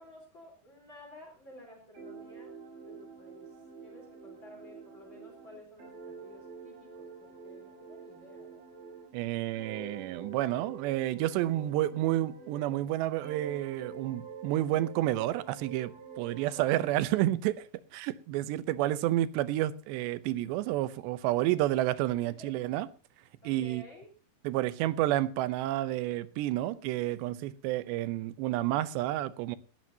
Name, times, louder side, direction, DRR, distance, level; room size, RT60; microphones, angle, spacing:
voice 1, 0.0-2.5 2.8-8.6 21.5-21.8 22.2-22.6 23.4-24.1, left 1 dB, 30° left, 4.6 m, -53 dB
sound 1, 1.9-9.2 9.5-12.9 13.2-16.9, right 5 dB, 60° right, 6.4 m, -47 dB
voice 2, 9.1-22.9 23.5-23.8 24.4-29.6, right 14 dB, 90° right, 3.0 m, -30 dB
19.0 x 15.0 x 2.8 m
omnidirectional pair, 4.9 m